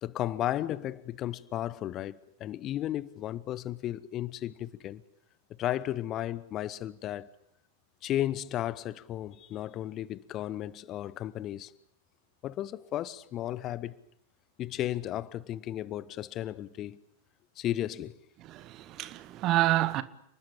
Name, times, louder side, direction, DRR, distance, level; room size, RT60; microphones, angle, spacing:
voice 1, 0.0-5.0 5.6-7.3 8.0-11.7 12.4-13.9 14.6-17.0 17.6-18.1, left 13 dB, 35° left, 0.9 m, -34 dB
voice 2, 18.4-20.0, right 16 dB, 35° right, 1.5 m, -28 dB
29.5 x 20.0 x 8.4 m
figure-of-eight pair, 90°, 0 cm